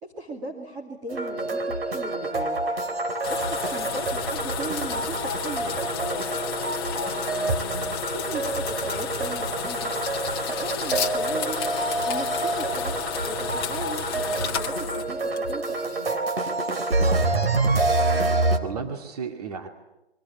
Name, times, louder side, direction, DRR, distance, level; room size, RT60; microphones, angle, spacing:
voice 1, 0.0-2.6 3.3-6.3 6.6-10.0 10.5-11.7 12.0-16.2 18.1-18.9, right 2 dB, 10° right, -2 dB, 2.2 m, -38 dB
sound 1, 1.1-18.6, right 2 dB, 65° right, 3.7 m, -27 dB
sound 2, 3.2-15.8, left 8 dB, 20° left, 1.4 m, -32 dB
voice 2, 16.9-17.5 18.2-19.7, right 5 dB, 35° right, 4 dB, 2.4 m, -35 dB
28.0 x 23.5 x 8.4 m, 0.96 s
hypercardioid pair, 160°, 32 cm